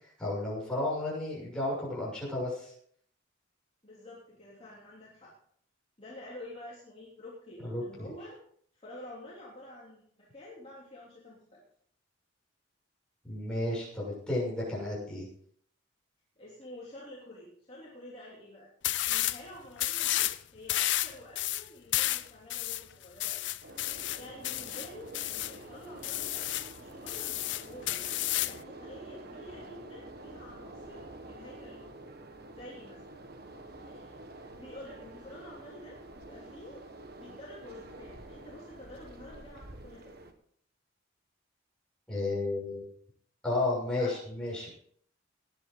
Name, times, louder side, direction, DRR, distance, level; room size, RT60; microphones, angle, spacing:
voice 1, 0.2-2.7 7.6-8.1 13.2-15.3 42.1-42.8 43.4-44.7, left 2 dB, 5° left, -6 dB, 6.5 m, -32 dB
voice 2, 3.8-5.3 6.0-8.4 8.7-11.6 16.4-18.7 19.0-23.4 23.9-26.5 26.8-28.1 28.4-32.1 32.5-33.2 33.7-36.8 37.1-40.1 44.0-44.1 44.5-44.6, left 1 dB, 30° left, -6 dB, 3.0 m, -49 dB
sound 1, 18.8-19.4 19.8-20.4 20.7-25.6 26.0-26.7 27.1-28.6, left 15 dB, 65° left, 0.6 m, -31 dB
sound 2, 23.6-40.3, right 2 dB, 50° right, 1.4 m, -48 dB
18.0 x 11.0 x 3.9 m, 0.63 s
head